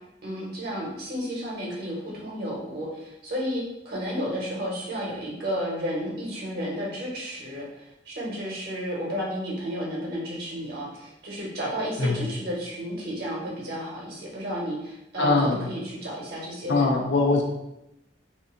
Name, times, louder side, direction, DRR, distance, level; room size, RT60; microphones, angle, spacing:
voice 1, 0.2-16.9, equal, 60° right, -3 dB, 1.0 m, -32 dB
voice 2, 15.2-15.7 16.7-17.4, left 3 dB, 85° left, 2 dB, 0.6 m, -22 dB
2.7 x 2.6 x 3.6 m, 0.88 s
head